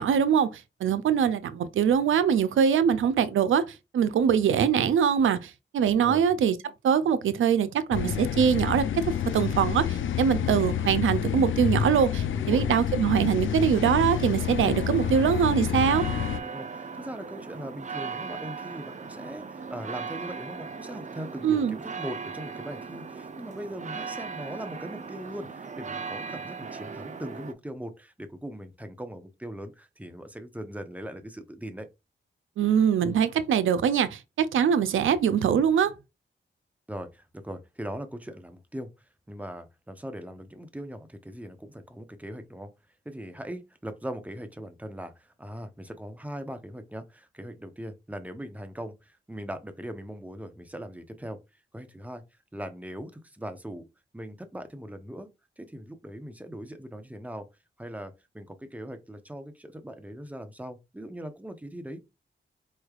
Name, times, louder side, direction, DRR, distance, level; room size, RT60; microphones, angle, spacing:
voice 1, 0.0-6.6 6.8-16.1 21.4-21.8 32.6-35.9, right 8 dB, 85° right, 0.4 m, -23 dB
voice 2, 5.9-6.3 12.3-12.7 16.4-31.9 36.9-38.9 39.3-42.7 43.0-51.4 51.7-52.2 52.5-53.9 54.1-57.5 57.8-62.1, equal, 5° right, 0.8 m, -40 dB
sound 1, 7.9-16.4, left 9 dB, 80° left, 0.4 m, -28 dB
sound 2, 14.0-27.5, right 5 dB, 40° right, 0.5 m, -38 dB
4.5 x 3.2 x 2.4 m
cardioid pair, 70°, 20 cm